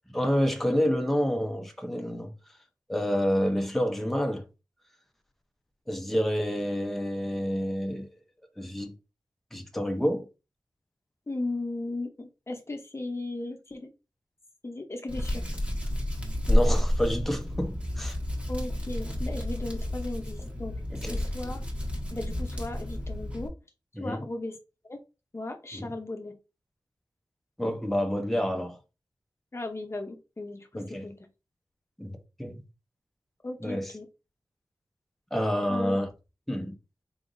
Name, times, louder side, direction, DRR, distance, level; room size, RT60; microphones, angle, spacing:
voice 1, 0.1-2.3 2.9-4.5 5.9-8.1 8.6-8.9 9.5-10.3 16.5-18.2 20.9-21.2 24.0-24.2 25.7-25.9 27.6-28.8 30.8-31.1 32.0-32.6 33.6-33.9 35.3-36.1 36.5-36.7, equal, 5° left, 0.8 m, -28 dB
voice 2, 11.3-13.9 14.6-15.4 18.5-20.8 21.1-21.6 22.1-23.5 24.0-24.6 24.8-25.0 25.3-26.3 29.5-31.3 33.4-34.1 35.7-36.0, left 2 dB, 35° left, 0.7 m, -36 dB
Hands, 15.1-23.5, equal, 15° right, 1.5 m, -30 dB
3.9 x 3.4 x 2.6 m
wide cardioid pair, 60°, 8 cm